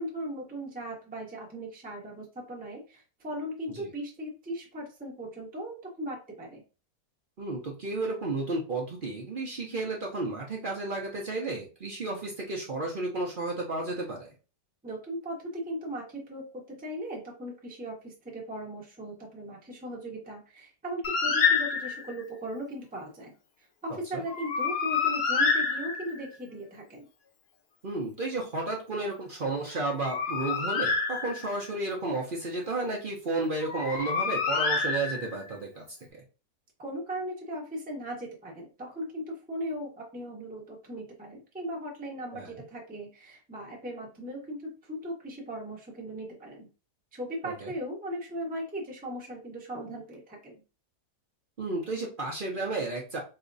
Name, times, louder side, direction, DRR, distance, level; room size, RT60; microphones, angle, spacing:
voice 1, 0.0-6.6 14.8-23.3 23.8-27.0 36.8-46.7 47.1-50.6, equal, 5° right, -1 dB, 0.7 m, -38 dB
voice 2, 7.4-14.3 24.1-24.2 27.8-35.8 36.1-36.2 42.3-42.6 47.4-47.7 51.6-53.2, right 2 dB, 45° right, -1 dB, 0.7 m, -32 dB
Bird, 21.0-22.2 24.3-26.4 29.8-31.7 33.6-35.5, left 5 dB, 55° left, 0.7 m, -28 dB
4.2 x 2.8 x 2.5 m, 0.33 s
omnidirectional pair, 1.6 m